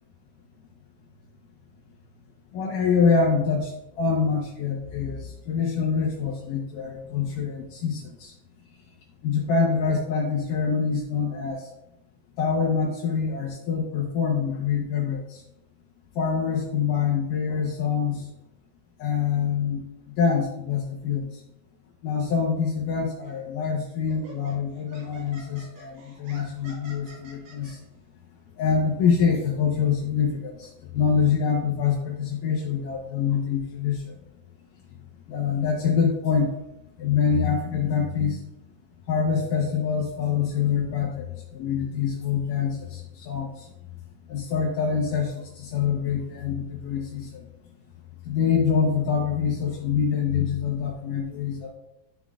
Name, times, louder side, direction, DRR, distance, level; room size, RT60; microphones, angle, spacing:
voice 1, 2.5-3.7 4.0-8.3 9.2-11.6 12.4-15.4 16.2-18.3 19.0-19.9 20.2-21.3 22.0-27.8 28.6-34.0 35.3-36.5 37.0-38.4 39.1-41.3 41.5-43.7 44.3-47.3 48.3-51.7, left 6 dB, 70° left, -1 dB, 2.2 m, -25 dB
Laughter, 23.2-23.4 24.1-27.7, right 2 dB, 80° right, 4.8 m, -48 dB
12.0 x 6.0 x 2.4 m, 0.90 s
omnidirectional pair, 4.6 m